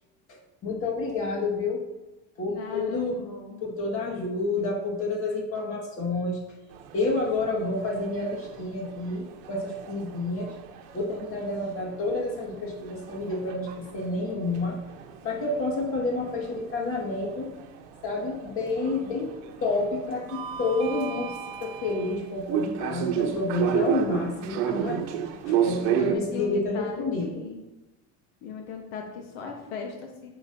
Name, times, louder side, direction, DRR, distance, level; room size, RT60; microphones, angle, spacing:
voice 1, 0.6-1.8 2.4-3.2 3.6-6.4 6.9-10.5 10.9-14.8 15.2-17.5 18.0-19.3 19.6-25.2 25.4-27.4, left 2 dB, 35° left, -2 dB, 1.9 m, -29 dB
voice 2, 2.5-3.6 25.9-27.6 28.4-30.3, left 5 dB, 80° left, 2 dB, 1.2 m, -38 dB
sound 1, 6.7-26.1, right 8 dB, 75° right, 0.9 m, -33 dB
7.6 x 7.4 x 2.7 m, 1.0 s
cardioid pair, 150°, 37 cm